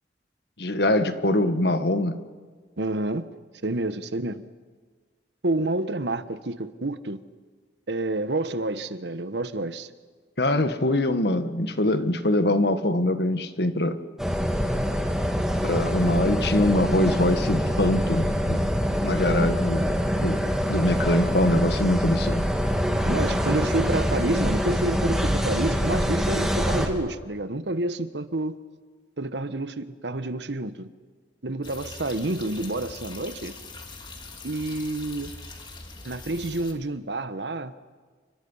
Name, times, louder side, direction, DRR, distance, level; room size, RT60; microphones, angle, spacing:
voice 1, 0.6-2.2 10.4-14.0 15.6-18.6 19.0-19.9 20.2-20.4 20.7-22.4, left 1 dB, 70° left, 1.6 m, -23 dB
voice 2, 2.8-3.2 3.6-4.4 5.4-7.2 7.9-9.9 23.0-28.6 29.2-30.9 31.4-33.6 34.4-35.3 36.0-37.7, right 2 dB, 80° right, 1.2 m, -29 dB
sound 1, 14.2-26.9, equal, 5° right, 2.6 m, -25 dB
sound 2, 31.6-36.7, left 3 dB, 25° left, 2.8 m, -42 dB
29.5 x 24.5 x 5.6 m
head